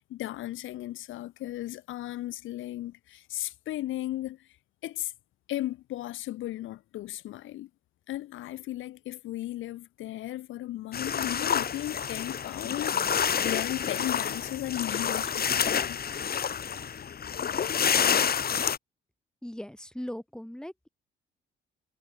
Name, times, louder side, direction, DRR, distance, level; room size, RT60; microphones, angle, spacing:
voice 1, 0.0-4.6 4.8-5.1 5.5-7.7 8.1-16.0, left 15 dB, 85° left, 1.9 m, -36 dB
sound 1, 10.9-18.8, left 7 dB, 50° left, 3.4 m, -28 dB
voice 2, 19.4-20.9, left 1 dB, 5° left, 6.2 m, -39 dB
cardioid pair, 90°, 20 cm